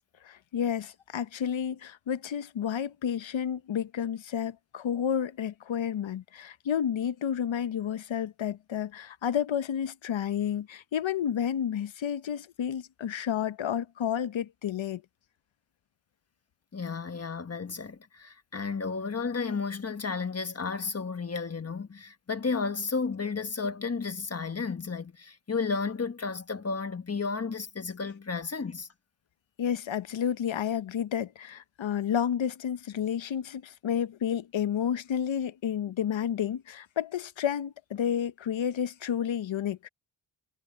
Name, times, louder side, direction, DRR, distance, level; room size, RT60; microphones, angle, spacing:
voice 1, 0.2-15.0 29.6-39.9, left 9 dB, 70° left, 0.9 m, -31 dB
voice 2, 16.7-28.9, left 4 dB, 30° left, 1.4 m, -33 dB
wide cardioid pair, 105°, 48 cm